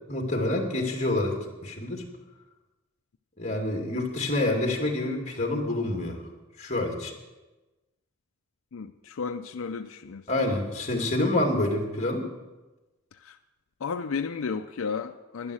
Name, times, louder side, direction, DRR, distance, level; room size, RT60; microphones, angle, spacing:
voice 1, 0.1-2.1 3.4-6.2 6.6-7.1 10.3-12.3, left 1 dB, 35° left, 2 dB, 2.3 m, -27 dB
voice 2, 8.7-10.3 13.1-13.4 13.8-15.5, left 5 dB, 80° left, 7 dB, 0.5 m, -33 dB
11.5 x 11.5 x 6.3 m, 1.1 s
head